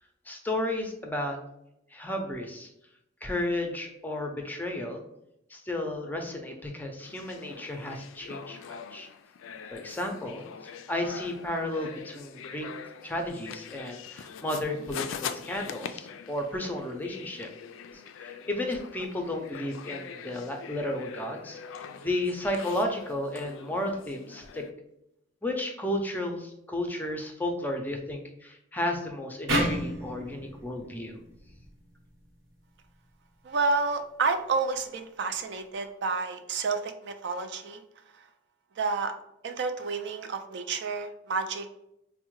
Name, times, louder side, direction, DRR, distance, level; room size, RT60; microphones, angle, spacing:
voice 1, 0.3-1.4 1.9-2.7 3.2-5.0 5.5-9.1 9.7-10.5 10.9-12.7 13.0-17.5 17.9-24.6 25.4-31.2, left 1 dB, 10° left, 2 dB, 0.4 m, -33 dB
sound 1, 7.0-24.7, left 7 dB, 85° left, 0.3 m, -43 dB
sound 2, 29.5-32.7, equal, 80° right, 1.0 m, -32 dB
voice 2, 33.4-37.8 38.8-39.1 39.4-41.7, right 4 dB, 60° right, 7 dB, 0.4 m, -30 dB
4.5 x 2.1 x 3.0 m, 0.82 s
head